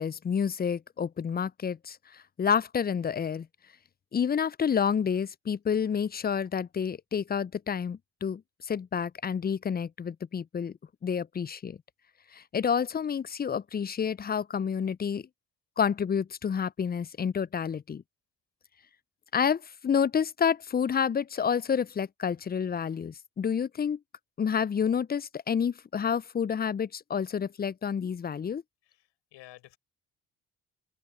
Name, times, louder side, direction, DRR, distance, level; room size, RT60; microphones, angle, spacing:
voice 1, 0.0-3.5 4.1-11.8 12.3-15.3 15.8-18.0 19.3-24.0 24.4-28.6, left 7 dB, 25° left, 0.4 m, -29 dB
voice 2, 28.8-29.8, left 17 dB, 80° left, 7.4 m, -52 dB
open air
hypercardioid pair, 45°, 43 cm